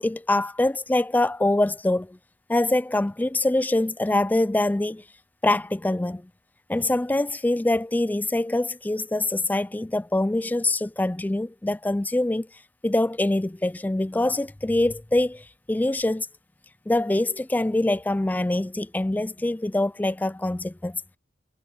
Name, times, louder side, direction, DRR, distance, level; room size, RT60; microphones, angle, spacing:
voice 1, 0.0-2.2 2.5-5.0 5.4-6.3 6.7-12.5 12.8-16.3 16.9-21.0, left 1 dB, 10° left, 0.3 m, -24 dB
head